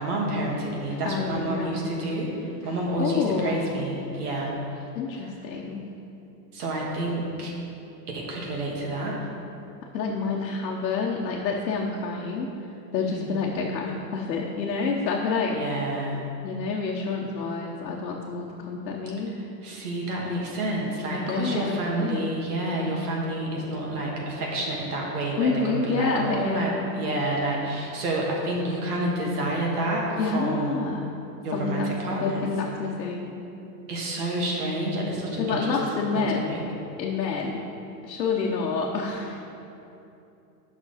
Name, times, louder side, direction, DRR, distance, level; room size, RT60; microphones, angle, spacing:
voice 1, 0.0-4.5 5.2-5.3 6.5-7.5 8.1-9.3 13.1-13.3 15.5-16.2 19.4-30.8 31.4-32.5 33.9-35.8 36.1-36.6, right 1 dB, 60° right, -2 dB, 2.0 m, -29 dB
voice 2, 1.1-1.8 3.0-3.7 4.9-5.8 9.9-12.5 12.9-15.6 16.4-19.3 21.1-22.3 25.4-26.9 30.2-31.1 31.5-31.9 32.2-33.4 35.4-36.5 37.0-37.6 38.0-39.5, left 4 dB, 85° left, -2 dB, 1.1 m, -28 dB
9.8 x 6.2 x 4.1 m, 2.8 s
supercardioid pair, 165°, 50 cm